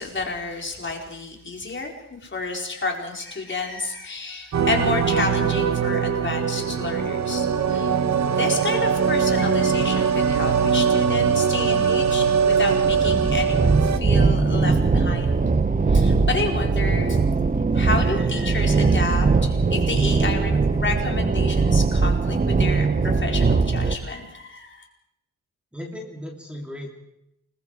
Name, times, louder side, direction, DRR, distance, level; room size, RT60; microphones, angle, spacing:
voice 1, 0.0-8.0 8.3-15.4 15.9-17.2 17.7-24.8, left 3 dB, 35° left, 1 dB, 4.3 m, -30 dB
sound 1, 4.5-14.0, right 6 dB, 55° right, 1.1 m, -21 dB
sound 2, 12.8-24.0, right 4 dB, 25° right, 1.0 m, -20 dB
voice 2, 25.7-27.0, left 1 dB, 5° right, -2 dB, 3.2 m, -37 dB
28.5 x 21.0 x 4.8 m, 0.81 s
wide cardioid pair, 120°, 34 cm